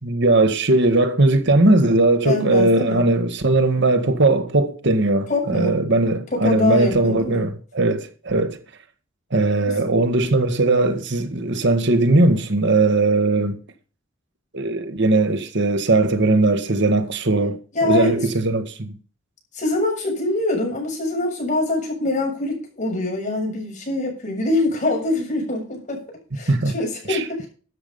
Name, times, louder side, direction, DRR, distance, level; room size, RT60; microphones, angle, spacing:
voice 1, 0.0-8.6 9.3-13.6 14.5-17.6 17.8-18.9 26.5-26.7 27.1-27.2, right 2 dB, 60° right, 1.6 m, -19 dB
voice 2, 2.2-3.1 5.3-5.8 6.3-7.5 17.7-18.2 19.5-26.0 26.3-27.5, left 2 dB, 40° left, 7.3 m, -24 dB
13.0 x 8.3 x 5.4 m
head